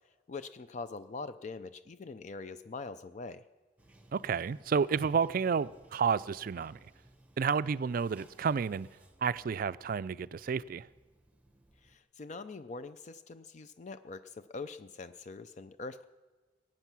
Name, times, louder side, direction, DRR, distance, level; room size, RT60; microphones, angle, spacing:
voice 1, 0.3-3.4 11.8-16.1, left 3 dB, 40° left, 0.4 m, -43 dB
Bathtub (filling or washing), 3.8-12.0, right 1 dB, 10° right, 0.9 m, -60 dB
voice 2, 4.1-6.9 7.4-8.9 9.2-10.9, right 6 dB, 50° right, 0.3 m, -31 dB
21.0 x 9.1 x 6.0 m
head